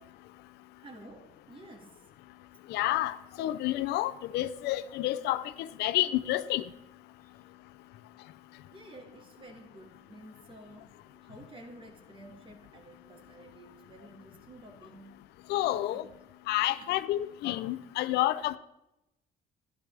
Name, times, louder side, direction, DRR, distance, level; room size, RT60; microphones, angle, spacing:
voice 1, 0.8-2.0 7.2-7.3 8.7-15.2 15.7-15.9 16.8-17.0, right 1 dB, 30° right, 4 dB, 2.1 m, -51 dB
voice 2, 2.7-6.6 15.5-16.0 16.5-18.6, left 15 dB, 80° left, 14 dB, 0.5 m, -29 dB
12.0 x 11.5 x 3.4 m, 0.90 s
cardioid pair, 110°, 17 cm